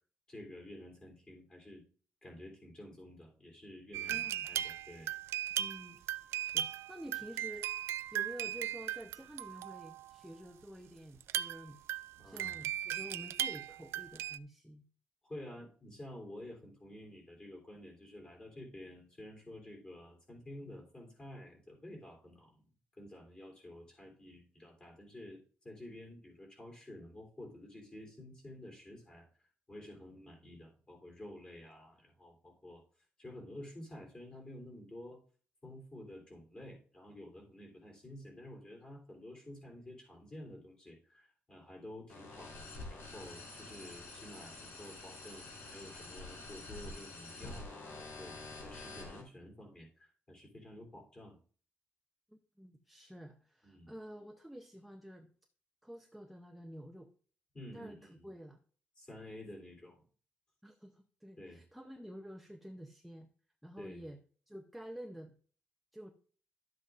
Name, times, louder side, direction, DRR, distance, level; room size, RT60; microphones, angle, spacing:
voice 1, 0.3-1.8 2.2-5.1 12.2-12.6 15.2-22.5 23.0-29.3 29.7-32.8 33.2-35.2 35.6-48.3 48.6-51.4 53.6-53.9 57.5-58.2 59.0-60.0 61.4-61.6 63.8-64.0, left 1 dB, 20° left, 0 dB, 3.1 m, -51 dB
sound 1, 3.9-10.2 11.2-14.4, right 11 dB, 85° right, 0.3 m, -38 dB
voice 2, 4.1-4.5 5.6-6.0 6.4-7.8 8.1-11.8 12.2-14.8 52.3-55.3 55.8-57.1 57.7-58.6 60.6-63.3 63.6-64.2 64.5-65.3 65.9-66.1, equal, ahead, 3 dB, 0.6 m, -49 dB
sound 2, 42.1-49.2, left 2 dB, 70° left, 3.5 m, -47 dB
12.0 x 7.8 x 2.4 m, 0.42 s
cardioid pair, 170°, 4 cm